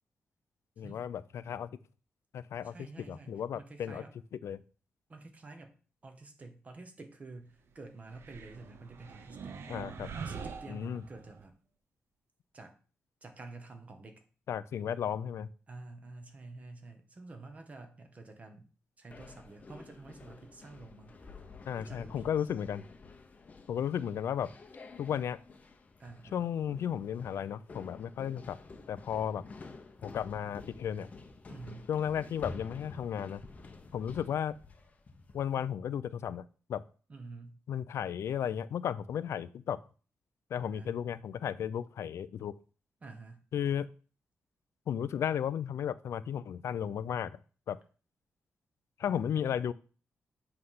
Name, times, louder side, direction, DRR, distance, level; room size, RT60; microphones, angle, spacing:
voice 1, 0.8-1.7 2.3-4.0 4.4-4.6 9.7-10.1 10.7-11.0 14.5-15.5 21.7-22.8 23.7-24.5 25.0-25.4 26.3-28.6 28.9-29.4 30.0-31.1 31.9-33.4 33.9-34.6 35.3-36.4 36.7-36.8 37.7-39.8 40.5-42.6 43.5-43.9 44.9-47.4 47.7-47.8 49.0-49.7, left 9 dB, 75° left, 15 dB, 0.3 m, -34 dB
voice 2, 2.6-4.1 5.1-5.7 6.0-9.6 10.1-11.5 12.5-12.8 13.2-14.2 15.7-18.7 19.0-21.2 21.8-22.7 26.0-26.4 31.5-31.9 37.1-37.6 40.6-41.0 43.0-43.5 49.1-49.5, right 3 dB, 30° right, 6 dB, 1.0 m, -49 dB
sound 1, 8.1-11.4, right 5 dB, 65° right, 0.6 m, -44 dB
sound 2, 19.1-35.6, left 3 dB, 30° left, 0.7 m, -50 dB
7.8 x 3.3 x 5.5 m, 0.38 s
wide cardioid pair, 165°, 5 cm